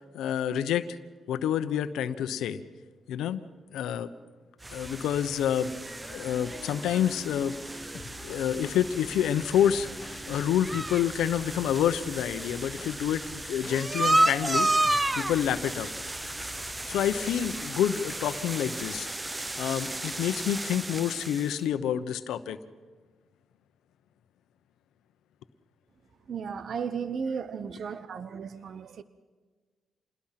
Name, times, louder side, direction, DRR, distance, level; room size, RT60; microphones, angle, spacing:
voice 1, 0.1-0.9 1.3-2.6 3.1-3.4 3.7-4.1 4.7-5.7 6.1-7.6 8.2-9.9 10.3-14.7 15.1-15.9 16.9-19.1 19.6-22.6, left 10 dB, 90° left, 1.0 m, -28 dB
sound 1, 4.6-21.6, right 2 dB, 20° right, 0.9 m, -32 dB
Harp, 5.3-11.8, left 1 dB, 10° left, 3.4 m, -49 dB
sound 2, 7.9-17.6, left 6 dB, 55° left, 1.0 m, -48 dB
voice 2, 26.3-29.0, right 6 dB, 60° right, 0.9 m, -35 dB
27.5 x 20.5 x 5.9 m
cardioid pair, 80°, 0 cm